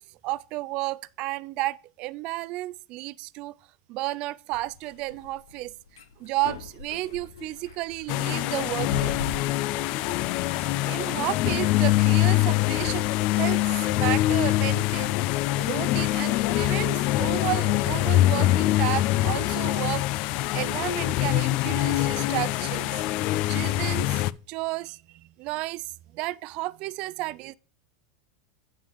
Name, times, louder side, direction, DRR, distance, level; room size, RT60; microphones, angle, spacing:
voice 1, 0.2-3.6 3.9-5.7 6.2-9.2 10.9-13.1 13.4-15.1 15.6-23.2 23.5-27.5, right 19 dB, 50° right, 0.4 m, -32 dB
sound 1, 4.5-20.0, left 5 dB, 85° left, 1.0 m, -44 dB
sound 2, 8.1-24.3, left 16 dB, 55° left, 0.4 m, -24 dB
9.0 x 7.3 x 3.6 m
hypercardioid pair, 100°, 2 cm